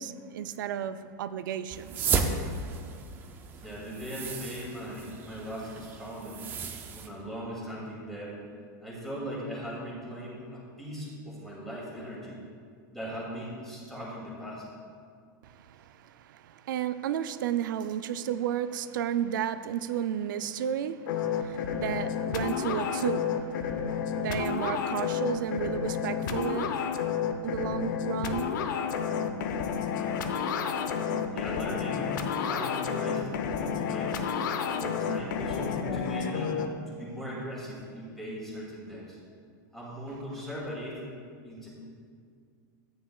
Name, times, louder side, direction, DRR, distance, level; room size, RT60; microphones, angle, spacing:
voice 1, 0.0-2.2 15.4-26.9 27.4-28.5, right 10 dB, 75° right, 0.5 m, -33 dB
sound 1, 1.7-7.1, right 5 dB, 20° right, 0.5 m, -34 dB
voice 2, 3.5-6.4 6.9-8.4 8.8-12.4 12.9-14.6 31.3-34.2 34.7-36.6 36.9-39.2 39.7-41.0 41.4-41.7, equal, ahead, 2.5 m, -39 dB
sound 2, 21.1-36.7, left 7 dB, 70° left, 0.7 m, -30 dB
13.5 x 9.5 x 2.3 m
supercardioid pair, 170°, 11 cm